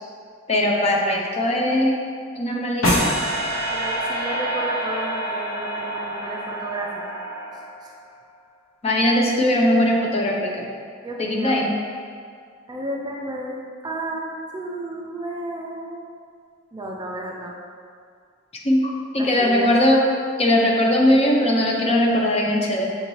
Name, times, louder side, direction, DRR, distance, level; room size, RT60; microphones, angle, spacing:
voice 1, 0.5-2.0 2.4-3.1 8.8-10.7 11.2-11.7 18.6-20.0 20.4-23.0, left 1 dB, 30° left, -1 dB, 0.5 m, -20 dB
sound 1, 2.8-8.0, equal, 90° left, 0.8 m, -26 dB
voice 2, 3.7-7.2 7.8-7.9 11.0-11.6 12.7-16.1 16.7-17.5 19.2-19.7, right 1 dB, 20° right, -1 dB, 0.4 m, -32 dB
6.4 x 2.7 x 3.0 m, 2.2 s
head